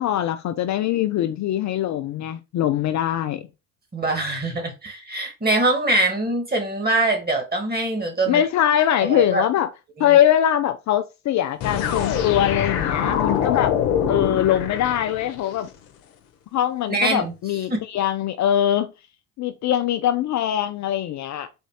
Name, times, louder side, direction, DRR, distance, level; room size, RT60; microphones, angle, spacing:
voice 1, 0.0-3.5 8.3-9.7 10.0-13.8 14.1-15.7 16.5-18.9 19.4-21.5, left 11 dB, 45° left, 0.5 m, -22 dB
voice 2, 3.9-8.4 9.0-9.4 10.0-10.2 16.9-17.3 17.7-17.8, right 2 dB, 25° right, 2.1 m, -23 dB
sound 1, 11.6-15.5, left 8 dB, 70° left, 0.9 m, -24 dB
4.3 x 2.6 x 4.7 m
hypercardioid pair, 60°, 39 cm